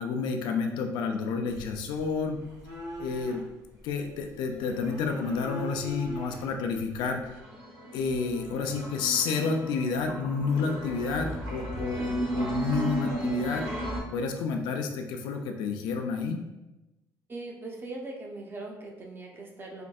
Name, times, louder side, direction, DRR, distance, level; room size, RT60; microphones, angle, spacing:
voice 1, 0.0-2.4 3.0-3.4 3.8-7.3 7.9-13.7 14.1-16.4, left 4 dB, 90° left, 4 dB, 0.4 m, -30 dB
sound 1, 1.5-7.5, right 1 dB, 50° right, 1.0 m, -43 dB
sound 2, 7.3-14.0, right 1 dB, 85° right, 1.0 m, -34 dB
voice 2, 17.3-19.8, right 2 dB, 30° right, 1 dB, 0.6 m, -40 dB
4.3 x 2.6 x 2.3 m, 1.0 s
cardioid pair, 110°, 7 cm